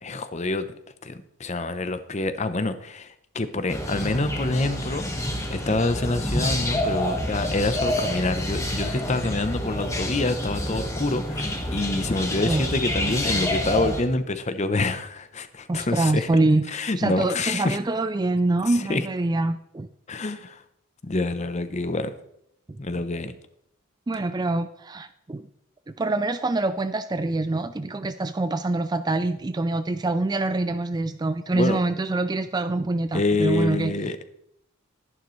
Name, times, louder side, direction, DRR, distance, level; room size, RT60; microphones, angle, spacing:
voice 1, 0.0-0.7 1.0-5.1 5.5-16.3 16.7-17.8 18.7-19.1 20.1-20.6 21.0-22.1 22.8-23.3 31.5-31.8 33.1-34.2, left 2 dB, 35° left, 11 dB, 0.7 m, -27 dB
sound 1, 3.7-14.0, left 1 dB, 15° left, 1.5 m, -28 dB
voice 2, 15.7-16.7 17.0-19.9 24.1-25.4 25.9-33.9, right 2 dB, 20° right, 12 dB, 0.3 m, -25 dB
12.0 x 11.0 x 3.2 m, 0.76 s
head